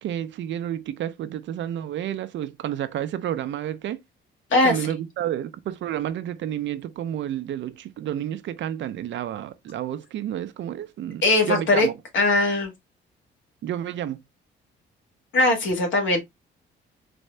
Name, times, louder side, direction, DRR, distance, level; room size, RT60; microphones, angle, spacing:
voice 1, 0.0-4.0 4.6-12.0 13.6-14.2, right 11 dB, 70° right, 0.6 m, -30 dB
voice 2, 4.5-4.9 11.2-11.9 12.1-12.7 15.3-16.2, left 2 dB, 75° left, 1.8 m, -20 dB
4.2 x 2.7 x 3.3 m
cardioid pair, 90°, 20 cm